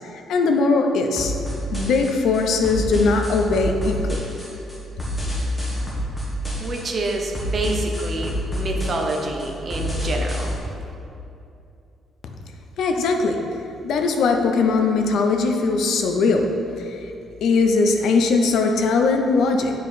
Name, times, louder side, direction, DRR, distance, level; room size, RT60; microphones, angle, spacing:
voice 1, 0.3-1.3 1.7-4.2 12.8-13.4 13.8-16.5 16.8-17.1 17.4-19.7, left 4 dB, 65° left, 4 dB, 0.6 m, -20 dB
sound 1, 1.2-10.6, equal, 10° left, 1.2 m, -28 dB
voice 2, 6.6-10.5, right 2 dB, 30° right, 1 dB, 0.7 m, -27 dB
8.6 x 5.1 x 4.2 m, 2.7 s
cardioid pair, 180°, 0 cm